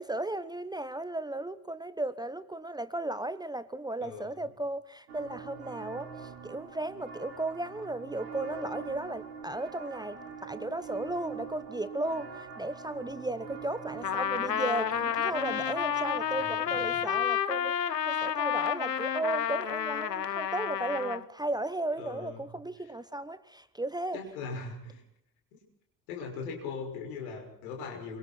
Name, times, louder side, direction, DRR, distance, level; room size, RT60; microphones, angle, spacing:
voice 1, 0.0-17.8 18.1-24.2, right 2 dB, 10° right, 14 dB, 0.9 m, -35 dB
voice 2, 4.0-4.5 16.4-17.0 22.0-22.4 24.1-25.0 26.1-28.2, left 4 dB, 65° left, 3 dB, 6.2 m, -40 dB
sound 1, 5.1-16.4, right 5 dB, 70° right, 4.1 m, -44 dB
Trumpet, 14.0-21.2, left 8 dB, 85° left, 0.8 m, -30 dB
27.0 x 24.0 x 4.5 m, 0.70 s
figure-of-eight pair, 55°, 48 cm